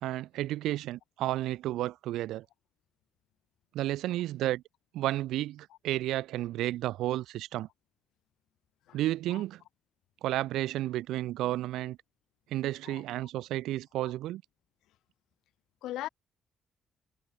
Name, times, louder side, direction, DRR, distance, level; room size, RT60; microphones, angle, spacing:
voice 1, 0.0-2.5 3.7-4.6 4.9-7.7 8.9-9.6 10.2-12.0 12.5-14.4, right 15 dB, 90° right, 0.3 m, -32 dB
voice 2, 8.9-9.0 9.3-9.4 12.8-13.0 14.0-14.1 15.8-16.1, left 14 dB, 85° left, 3.3 m, -39 dB
cardioid pair, 90°, 0 cm